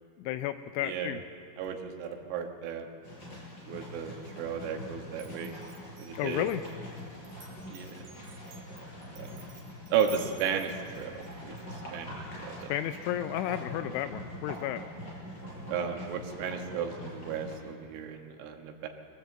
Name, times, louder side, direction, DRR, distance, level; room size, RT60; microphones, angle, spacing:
voice 1, 0.2-1.2 6.2-6.6 12.7-14.8, left 12 dB, 85° left, 10 dB, 2.8 m, -32 dB
voice 2, 0.8-1.2 1.6-2.9 3.7-5.6 6.0-6.5 7.7-8.0 9.2-9.3 9.9-11.6 11.9-12.7 15.7-18.9, right 7 dB, 80° right, 3 dB, 4.0 m, -34 dB
sound 1, 3.0-17.6, equal, 20° left, 4.9 m, -44 dB
Glass, 5.2-11.6, right 4 dB, 50° right, 2.6 m, -52 dB
22.0 x 15.5 x 7.8 m, 2.6 s
omnidirectional pair, 5.9 m